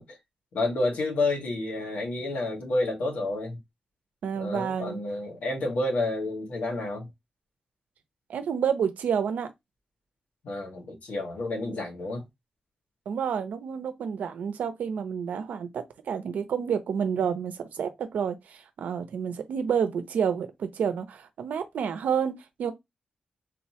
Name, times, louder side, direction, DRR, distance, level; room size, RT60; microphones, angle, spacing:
voice 1, 0.5-3.6 4.4-7.1 10.4-12.2, left 2 dB, 80° left, 1.7 m, -29 dB
voice 2, 4.2-5.0 8.3-9.5 13.1-22.7, right 7 dB, 85° right, 0.7 m, -29 dB
3.9 x 3.1 x 2.8 m
wide cardioid pair, 140°, 3 cm